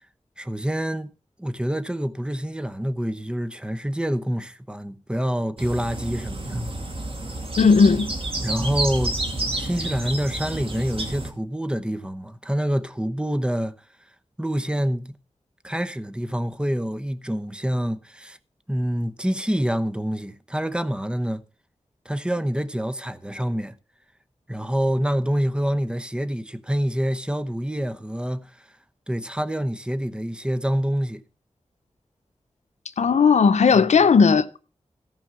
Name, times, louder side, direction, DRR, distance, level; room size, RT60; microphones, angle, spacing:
voice 1, 0.4-6.6 8.4-9.1 9.5-13.7 14.4-15.1 15.6-18.4 18.7-21.4 22.0-23.8 24.5-28.7 29.1-31.2 33.7-33.9, equal, 10° right, 0.9 m, -26 dB
sound 1, 5.6-11.3, right 2 dB, 55° right, 2.4 m, -29 dB
voice 2, 7.6-8.1 33.0-34.6, left 5 dB, 85° left, 0.7 m, -16 dB
14.5 x 5.4 x 7.4 m
wide cardioid pair, 65°, 11 cm